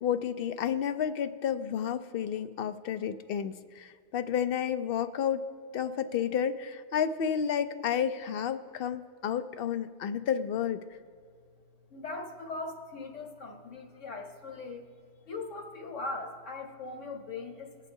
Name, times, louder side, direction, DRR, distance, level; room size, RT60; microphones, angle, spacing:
voice 1, 0.0-5.5 5.7-10.8, left 8 dB, 60° left, 10 dB, 0.7 m, -31 dB
voice 2, 11.9-14.8 15.3-17.7, left 3 dB, 85° left, 1 dB, 1.6 m, -40 dB
21.0 x 8.3 x 2.7 m, 2.2 s
omnidirectional pair, 1.2 m